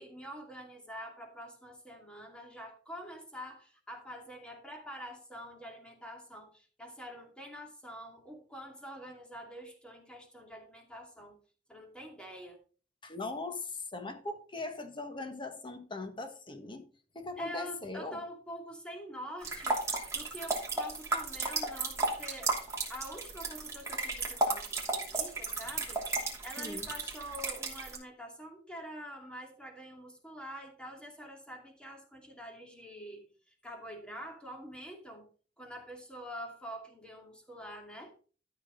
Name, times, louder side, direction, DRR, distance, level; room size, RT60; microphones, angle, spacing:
voice 1, 0.0-11.3 11.7-12.6 17.4-19.8 20.1-22.5 22.9-33.2 33.6-35.2 35.6-38.1, equal, 5° left, 2.5 m, -46 dB
voice 2, 13.0-16.9 17.1-18.2 26.6-26.9, left 3 dB, 30° left, 1.4 m, -40 dB
sound 1, 19.4-28.0, right 3 dB, 15° right, 2.9 m, -33 dB
13.0 x 6.4 x 3.9 m
head